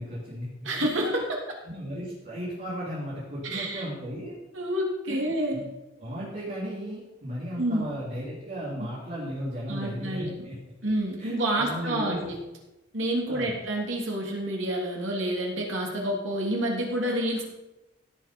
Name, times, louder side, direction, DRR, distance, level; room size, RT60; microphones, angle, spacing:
voice 1, 0.0-0.7 1.1-1.2 1.7-4.3 5.1-5.6 6.0-10.6 11.2-12.2 13.3-13.5, equal, 45° right, -8 dB, 3.8 m, -35 dB
voice 2, 0.6-1.4 3.5-3.8 4.5-5.6 7.6-7.9 8.8-8.9 9.7-10.4 10.8-12.4 12.9-17.4, right 1 dB, 85° right, -1 dB, 3.2 m, -28 dB
16.5 x 7.3 x 5.4 m, 1.0 s
head